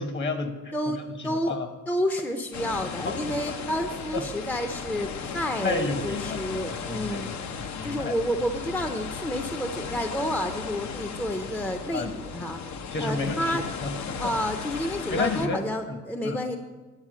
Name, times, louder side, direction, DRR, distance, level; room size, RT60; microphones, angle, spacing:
voice 1, 0.0-1.7 3.0-3.4 4.1-4.2 5.6-6.4 6.8-7.2 7.7-8.1 11.9-12.1 12.9-14.3 15.1-15.6 15.9-16.0 16.2-16.4, left 3 dB, 40° left, 7 dB, 1.1 m, -31 dB
voice 2, 0.7-1.5 1.9-12.6 13.0-13.6 14.2-16.6, equal, 5° left, 5 dB, 0.5 m, -30 dB
sound 1, 2.5-15.5, left 6 dB, 65° left, 0.8 m, -36 dB
9.7 x 4.4 x 7.4 m, 1.3 s
cardioid pair, 90°, 30 cm